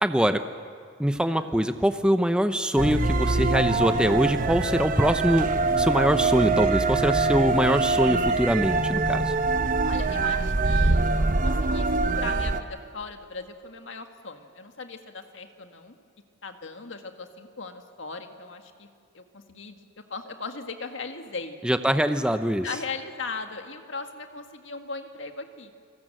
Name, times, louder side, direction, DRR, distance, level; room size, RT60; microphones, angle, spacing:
voice 1, 0.0-0.4 1.0-5.5 5.8-9.3 21.6-22.7, equal, 5° right, 9 dB, 0.7 m, -23 dB
sound 1, 2.8-12.6, right 3 dB, 45° right, 0.9 m, -24 dB
voice 2, 9.8-11.1 11.4-16.0 16.4-18.9 19.1-19.8 20.1-21.6 22.6-25.7, left 4 dB, 70° left, 6 dB, 1.9 m, -38 dB
29.5 x 19.0 x 7.8 m, 2.1 s
head